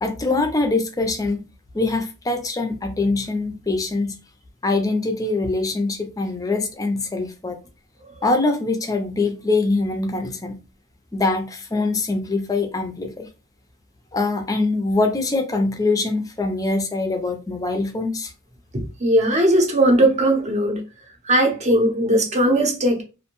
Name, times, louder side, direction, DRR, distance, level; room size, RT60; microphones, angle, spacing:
voice 1, 0.0-1.4 1.7-4.2 4.6-7.6 8.2-10.6 11.1-13.3 14.1-18.3, left 3 dB, 15° left, 0.4 m, -23 dB
voice 2, 19.0-20.8 21.2-23.0, right 1 dB, 30° right, 0.7 m, -18 dB
2.5 x 2.1 x 2.9 m
head